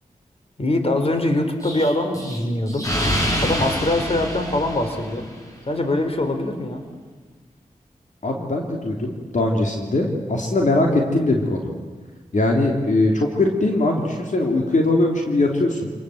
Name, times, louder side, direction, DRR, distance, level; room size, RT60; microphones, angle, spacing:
voice 1, 0.6-2.9 3.4-5.3 5.7-6.8, left 1 dB, 45° left, 6 dB, 3.7 m, -23 dB
Explosion, 1.6-5.5, equal, 25° left, 6.2 m, -26 dB
voice 2, 8.2-11.7 12.3-15.9, left 2 dB, 60° left, 1 dB, 3.3 m, -21 dB
27.5 x 20.5 x 8.0 m, 1.3 s
cardioid pair, 55°, 14 cm